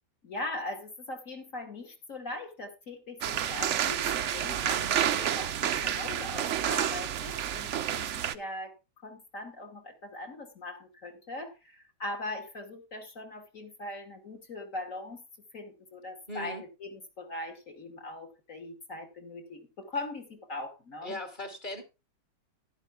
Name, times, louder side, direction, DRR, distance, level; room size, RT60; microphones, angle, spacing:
voice 1, 0.2-8.8 9.0-15.2 15.5-21.2, left 2 dB, 40° left, 3 dB, 2.7 m, -40 dB
sound 1, 3.2-8.3, right 10 dB, 85° right, 0.6 m, -29 dB
voice 2, 4.5-4.8 16.3-16.6 21.0-21.8, left 1 dB, 25° left, 4 dB, 2.8 m, -39 dB
15.0 x 11.5 x 2.4 m, 0.26 s
omnidirectional pair, 2.1 m